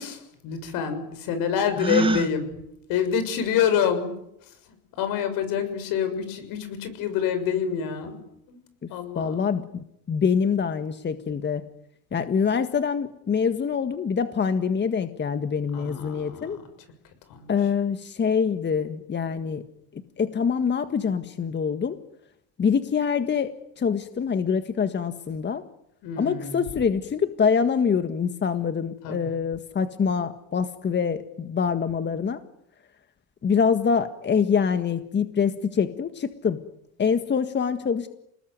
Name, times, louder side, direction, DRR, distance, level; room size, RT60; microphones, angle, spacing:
voice 1, 0.0-2.5 2.9-4.1 5.0-8.2 8.5-8.6 8.9-9.6 15.7-16.6 17.3-17.7 26.0-26.6 29.0-29.3, left 7 dB, 70° left, 10 dB, 6.8 m, -27 dB
Gasp, 1.7-2.3, right 2 dB, 15° right, 1.9 m, -23 dB
voice 2, 9.2-11.7 12.1-16.6 17.5-19.6 20.2-22.0 22.6-25.6 26.2-32.4 33.4-36.6 37.0-38.1, left 6 dB, 30° left, 9 dB, 1.7 m, -25 dB
29.0 x 20.5 x 9.5 m, 0.79 s
supercardioid pair, 100°, 34 cm